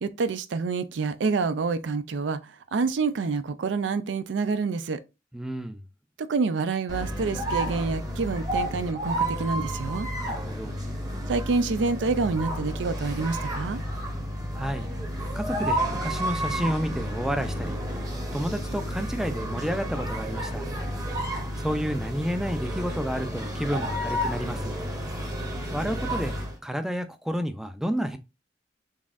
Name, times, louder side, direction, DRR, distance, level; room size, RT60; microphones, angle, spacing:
voice 1, 0.0-5.0 6.2-10.1 11.3-13.8, right 4 dB, 85° right, 0.4 m, -27 dB
voice 2, 5.3-5.8 10.2-10.8 14.5-14.8 15.3-17.8 18.3-20.6 21.6-24.7 25.7-26.3 26.6-28.2, equal, 5° right, 0.4 m, -30 dB
sound 1, 6.9-26.6, equal, 20° right, 0.8 m, -31 dB
4.0 x 3.5 x 2.4 m
head